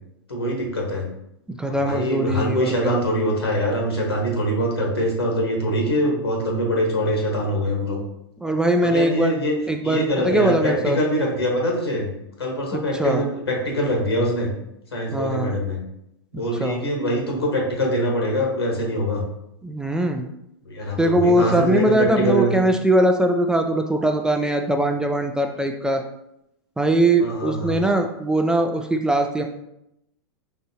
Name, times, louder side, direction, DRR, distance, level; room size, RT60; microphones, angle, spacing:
voice 1, 0.3-1.1 1.6-8.0 8.8-9.5 9.8-12.1 12.4-14.5 14.9-15.8 16.3-19.2 20.6-22.6 27.2-27.8, equal, 85° left, 0 dB, 1.3 m, -23 dB
voice 2, 1.6-3.0 8.4-9.4 9.7-11.0 13.0-13.2 15.1-15.6 16.3-16.8 19.6-20.3 21.0-26.0 26.8-29.4, right 1 dB, 5° right, 4 dB, 0.3 m, -21 dB
4.3 x 3.6 x 2.7 m, 0.82 s
hypercardioid pair, 100°, 13 cm